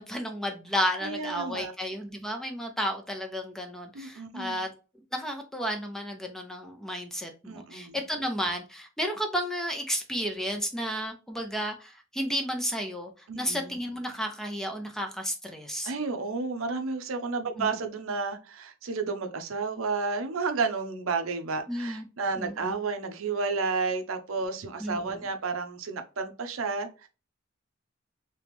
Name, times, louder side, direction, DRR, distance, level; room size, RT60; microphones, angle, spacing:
voice 1, 0.0-4.7 5.1-15.9 17.6-17.7 21.7-22.0 22.4-22.7 24.8-25.2, equal, ahead, 0.6 m, -32 dB
voice 2, 1.0-1.7 3.9-4.6 7.5-8.0 13.3-13.7 15.8-27.1, right 4 dB, 85° right, 0.6 m, -31 dB
3.0 x 3.0 x 3.4 m
head